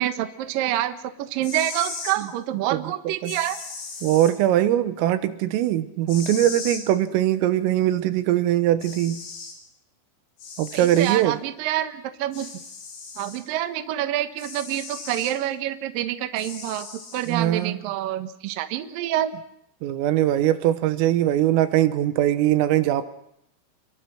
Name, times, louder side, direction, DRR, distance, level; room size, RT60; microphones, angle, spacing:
voice 1, 0.0-3.6 10.7-12.5 13.2-16.9 17.1-19.3, right 13 dB, 70° right, 2.2 m, -27 dB
sound 1, 1.3-2.2 3.3-4.3 6.1-6.8 8.3-8.4 8.8-9.6 10.4-11.2 12.3-13.4 14.4-15.4 16.4-17.3, left 4 dB, 65° left, 6.7 m, -37 dB
voice 2, 4.0-9.2 10.6-11.4 17.3-17.8 19.8-23.0, right 12 dB, 85° right, 3.8 m, -21 dB
27.5 x 23.0 x 6.2 m
omnidirectional pair, 5.9 m